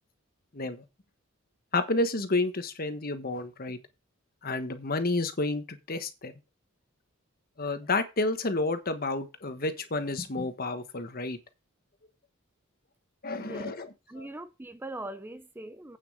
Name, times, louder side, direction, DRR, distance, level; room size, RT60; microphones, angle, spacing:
voice 1, 0.5-0.8 1.7-3.8 4.4-6.3 7.6-11.4 13.2-14.3, left 2 dB, 45° left, 1.3 m, -30 dB
voice 2, 13.4-13.8 14.1-16.0, right 1 dB, 10° right, 0.5 m, -41 dB
8.7 x 7.2 x 4.9 m
head